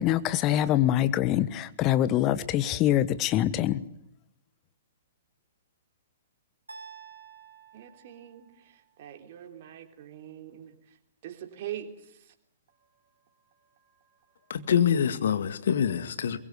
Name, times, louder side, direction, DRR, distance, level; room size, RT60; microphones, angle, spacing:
voice 1, 0.0-3.8, left 12 dB, 30° left, 1.3 m, -24 dB
sound 1, 6.7-8.8, right 5 dB, 80° right, 4.8 m, -49 dB
voice 2, 7.7-11.0 11.2-12.3 12.7-14.7, right 11 dB, 45° right, 3.6 m, -45 dB
voice 3, 14.5-16.4, left 8 dB, 60° left, 2.0 m, -25 dB
23.0 x 22.0 x 8.3 m
figure-of-eight pair, 115°, 0 cm